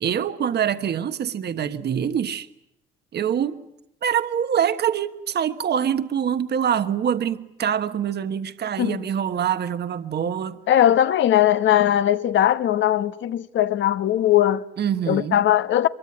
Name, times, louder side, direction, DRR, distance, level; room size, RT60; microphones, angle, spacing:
voice 1, 0.0-2.5 3.1-3.7 4.0-10.6 14.8-15.4, right 8 dB, 55° right, 1.3 m, -25 dB
voice 2, 10.7-14.6 15.1-15.9, left 11 dB, 70° left, 1.1 m, -19 dB
24.0 x 22.5 x 9.8 m
cardioid pair, 90°, 20 cm